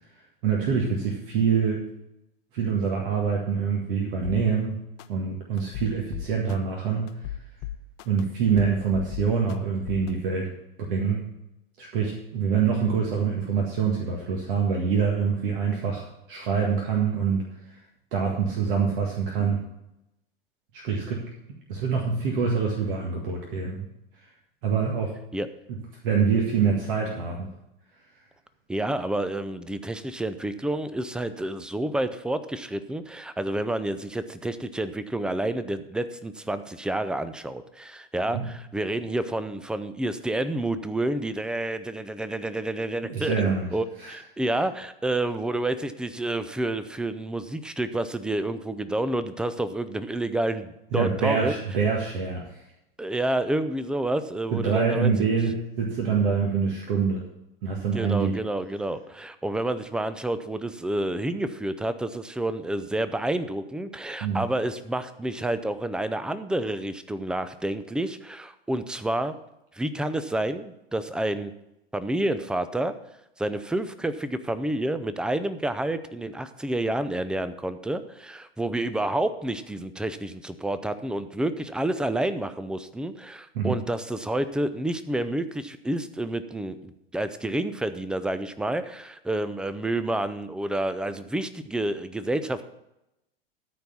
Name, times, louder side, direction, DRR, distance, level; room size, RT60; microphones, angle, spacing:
voice 1, 0.4-1.8 2.5-4.8 5.1-7.1 8.1-10.5 10.8-11.3 11.8-17.8 18.1-19.6 20.7-21.3 21.7-23.9 24.6-25.1 26.0-27.5 38.3-38.4 43.0-43.7 44.0-44.1 50.9-52.6 54.5-57.2 57.6-58.4 64.2-64.4 83.5-83.8, right 6 dB, 60° right, 0 dB, 1.9 m, -25 dB
sound 1, 4.2-4.4 5.0-5.1 5.6-6.5 7.1-8.2 8.5-9.5 9.9-10.1, left 12 dB, 45° left, 0.8 m, -35 dB
voice 2, 28.7-51.5 53.0-55.1 57.9-69.3 69.8-71.5 71.9-72.9 73.4-92.7, right 1 dB, 5° right, 12 dB, 0.5 m, -29 dB
13.5 x 4.6 x 7.0 m, 0.87 s
hypercardioid pair, 95°, 30 cm